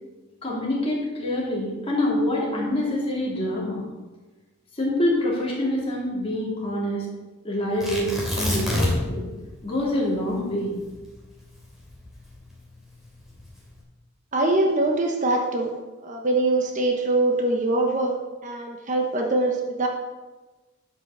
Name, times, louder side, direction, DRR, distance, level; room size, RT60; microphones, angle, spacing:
voice 1, 0.4-3.8 4.7-7.1 7.4-9.3 9.6-10.7, left 1 dB, 25° left, -5 dB, 3.5 m, -26 dB
Tearing, 7.8-9.2 9.5-9.6 10.1-12.5 13.2-13.7, left 1 dB, ahead, 3.0 m, -27 dB
voice 2, 14.3-15.7 16.0-18.1 18.4-19.9, right 2 dB, 35° right, 2 dB, 1.1 m, -23 dB
12.0 x 6.2 x 6.8 m, 1.2 s
head